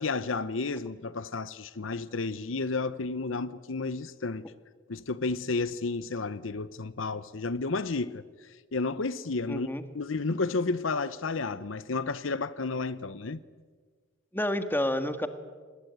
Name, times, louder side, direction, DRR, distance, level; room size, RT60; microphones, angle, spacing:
voice 1, 0.0-4.4 4.9-8.2 8.7-9.7 9.9-13.4, left 3 dB, 80° left, 0.9 m, -31 dB
voice 2, 9.5-9.8 14.3-15.3, left 1 dB, 10° left, 1.7 m, -29 dB
26.5 x 20.0 x 9.3 m
head